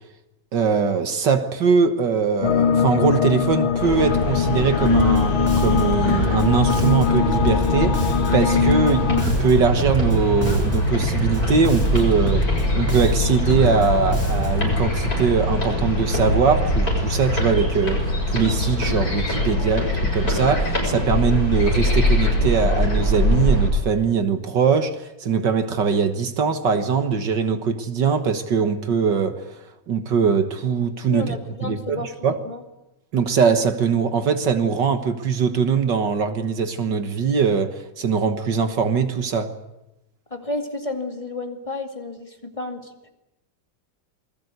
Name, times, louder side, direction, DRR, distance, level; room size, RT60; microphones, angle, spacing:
voice 1, 0.5-29.4 29.9-32.4 33.1-39.5, right 5 dB, 60° right, 2.0 m, -21 dB
sound 1, 2.4-9.2, left 7 dB, 80° left, 2.0 m, -22 dB
sound 2, 3.8-23.7, left 1 dB, 45° left, 7.3 m, -23 dB
Bass guitar, 4.8-14.7, equal, 5° right, 4.3 m, -29 dB
voice 2, 31.1-32.6 40.3-43.1, left 2 dB, 15° left, 2.2 m, -32 dB
28.0 x 20.5 x 8.2 m
omnidirectional pair, 2.2 m